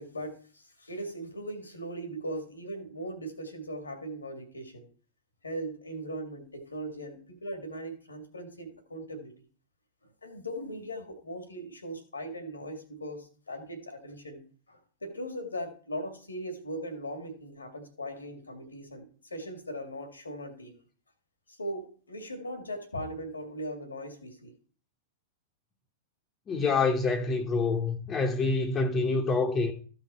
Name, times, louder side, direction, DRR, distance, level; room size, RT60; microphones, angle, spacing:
voice 1, 0.0-4.9 5.4-9.3 10.2-14.4 14.7-20.8 21.5-24.5, equal, 85° left, 2.2 m, -39 dB
voice 2, 26.5-29.7, left 3 dB, 25° left, 1.3 m, -26 dB
14.0 x 5.6 x 4.4 m
figure-of-eight pair, 95°, 0 cm